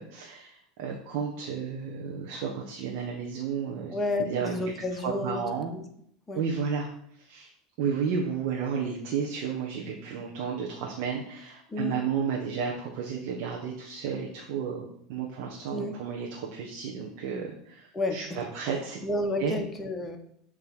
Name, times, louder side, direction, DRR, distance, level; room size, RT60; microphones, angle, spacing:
voice 1, 0.0-5.7 6.3-7.5 7.8-19.0 19.4-19.5, right 6 dB, 65° right, 0 dB, 1.2 m, -32 dB
voice 2, 3.9-5.4 5.7-5.8 6.3-6.4 11.7-12.0 15.7-16.0 17.9-18.2 19.0-20.2, left 2 dB, 15° left, 3 dB, 1.3 m, -30 dB
7.5 x 3.3 x 6.1 m, 0.69 s
hypercardioid pair, 100°, 0 cm